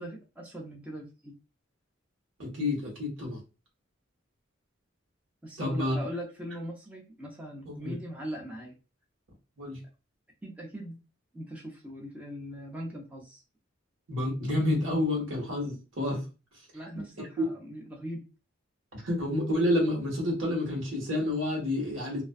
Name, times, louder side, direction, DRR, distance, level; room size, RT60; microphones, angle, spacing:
voice 1, 0.0-1.3 5.4-8.8 10.4-11.0 11.3-13.4 16.7-18.2, equal, 5° right, -2 dB, 0.5 m, -40 dB
voice 2, 2.4-3.4 5.6-6.0 7.6-7.9 9.6-9.8 14.1-16.2 17.0-17.5 18.9-22.2, left 1 dB, 70° right, -1 dB, 1.0 m, -29 dB
2.4 x 2.2 x 2.5 m, 0.31 s
head